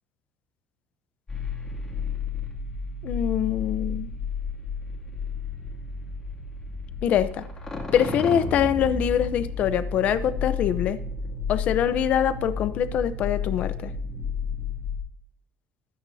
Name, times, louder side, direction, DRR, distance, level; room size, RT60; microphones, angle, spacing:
sound 1, 1.3-15.0, left 5 dB, 10° left, 2.5 m, -32 dB
voice 1, 3.0-4.1 7.0-7.4 7.9-11.0 11.5-13.9, left 9 dB, 40° left, 12 dB, 0.8 m, -24 dB
24.0 x 9.5 x 2.8 m, 0.65 s
cardioid pair, 175°, 4 cm